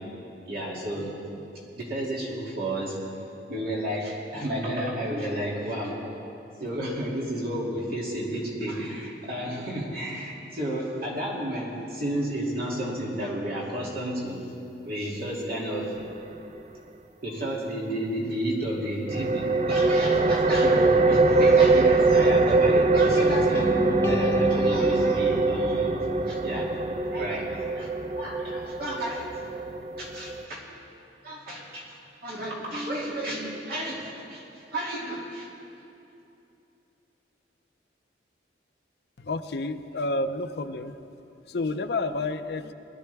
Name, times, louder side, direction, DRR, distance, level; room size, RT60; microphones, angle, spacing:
voice 1, 0.5-1.4 1.8-3.0 3.5-6.0 6.6-14.4 14.8-15.9 17.2-23.7 24.0-25.9 26.3-26.7 27.1-27.9 28.2-29.3 30.0-30.6 31.2-35.5, right 1 dB, 55° right, -5 dB, 2.6 m, -32 dB
sound 1, 19.1-30.5, right 3 dB, 40° right, 0.5 m, -22 dB
sound 2, 23.5-27.6, left 1 dB, 15° left, 0.5 m, -32 dB
voice 2, 39.2-41.1 41.5-42.7, left 2 dB, 60° left, 9 dB, 0.6 m, -30 dB
21.0 x 13.0 x 3.5 m, 2.8 s
head